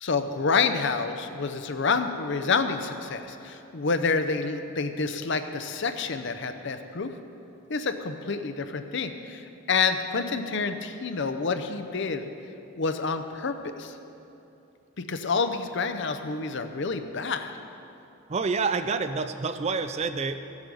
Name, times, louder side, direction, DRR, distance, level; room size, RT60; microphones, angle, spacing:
voice 1, 0.0-7.1 7.7-12.3 12.8-14.0 15.0-17.5, left 4 dB, 55° left, 8 dB, 0.6 m, -28 dB
voice 2, 18.3-20.4, right 4 dB, 30° right, 10 dB, 0.4 m, -28 dB
15.0 x 8.0 x 5.3 m, 2.8 s
head